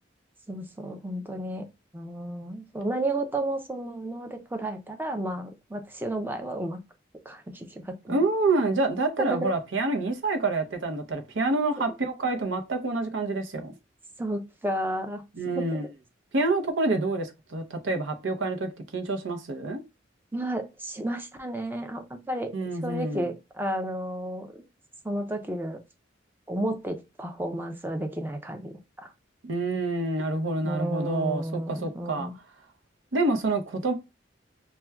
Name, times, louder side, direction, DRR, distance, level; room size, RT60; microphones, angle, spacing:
voice 1, 0.5-1.6 1.9-6.8 7.3-8.2 9.2-9.5 14.2-15.8 20.3-22.5 22.8-24.5 25.0-25.8 26.5-29.1 30.6-32.3, right 1 dB, 10° right, 0.5 m, -32 dB
voice 2, 8.1-13.7 15.4-15.8 16.3-19.8 22.5-23.3 29.4-32.3 33.1-33.9, right 2 dB, 90° right, 0.7 m, -27 dB
5.5 x 2.2 x 2.3 m
head